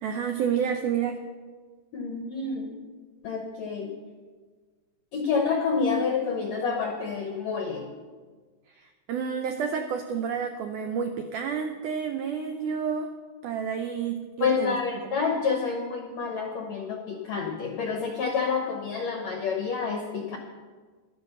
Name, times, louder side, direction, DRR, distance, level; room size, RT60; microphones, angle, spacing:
voice 1, 0.0-1.2 8.8-13.1 13.4-14.8, right 7 dB, 90° right, 6 dB, 1.8 m, -30 dB
voice 2, 1.9-2.8 3.2-3.9 5.1-7.9 14.4-20.4, left 5 dB, 75° left, 3 dB, 1.6 m, -28 dB
12.0 x 10.0 x 6.6 m, 1.5 s
omnidirectional pair, 4.4 m